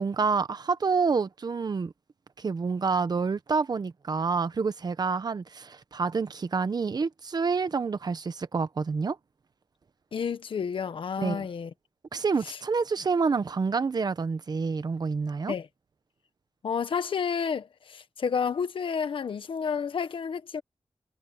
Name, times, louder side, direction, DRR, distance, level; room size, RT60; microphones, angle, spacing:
voice 1, 0.0-1.9 2.4-9.2 11.2-11.5 12.1-15.5, right 5 dB, 50° right, 1.0 m, -28 dB
voice 2, 10.1-11.7 12.5-12.6 15.5-15.7 16.6-20.6, left 6 dB, 80° left, 1.4 m, -30 dB
wide cardioid pair, 110°, 9 cm